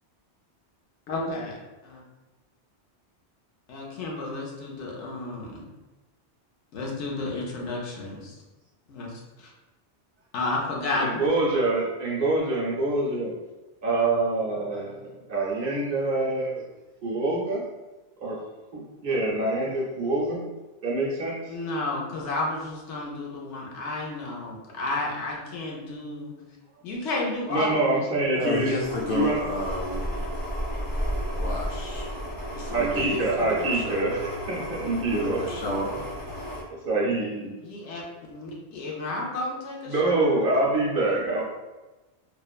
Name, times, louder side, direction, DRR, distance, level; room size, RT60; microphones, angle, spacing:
voice 1, 1.1-1.6 1.8-2.0 3.7-5.6 6.7-8.3 8.9-9.5 10.3-11.3 21.5-26.3 26.8-28.0 37.6-38.0 38.3-40.7, left 2 dB, 80° left, -2 dB, 1.0 m, -32 dB
voice 2, 11.0-13.3 13.8-16.6 17.0-17.6 18.2-18.4 18.7-20.4 20.8-21.4 27.5-28.7 29.1-29.4 32.7-35.4 36.8-37.5 39.9-41.4, right 2 dB, 60° right, -4 dB, 0.7 m, -25 dB
voice 3, 28.3-30.2 31.2-32.1 32.5-34.0 35.1-36.0, left 1 dB, 60° left, -3 dB, 0.7 m, -31 dB
sound 1, 28.8-36.6, equal, 25° left, 0.6 m, -33 dB
3.1 x 2.0 x 2.3 m, 1.1 s
omnidirectional pair, 1.2 m